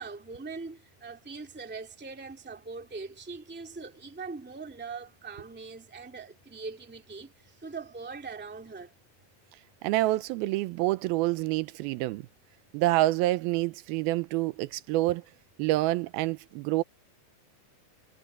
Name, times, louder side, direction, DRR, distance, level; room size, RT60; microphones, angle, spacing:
voice 1, 0.0-8.9, right 4 dB, 5° right, 1.5 m, -41 dB
voice 2, 9.8-12.3 12.7-15.2 15.6-16.8, right 18 dB, 85° right, 2.5 m, -27 dB
omnidirectional pair, 4.4 m